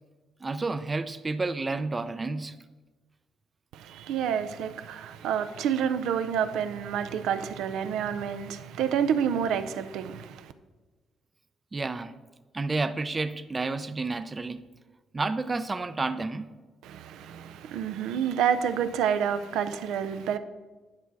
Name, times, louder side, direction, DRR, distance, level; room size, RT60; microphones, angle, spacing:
voice 1, 0.4-2.6 11.7-12.1 12.5-14.6 15.1-16.5, right 3 dB, 25° right, 0.4 m, -30 dB
voice 2, 3.7-10.5 16.8-20.4, right 8 dB, 90° right, 0.5 m, -29 dB
9.6 x 5.6 x 4.6 m
cardioid pair, 90°, 0 cm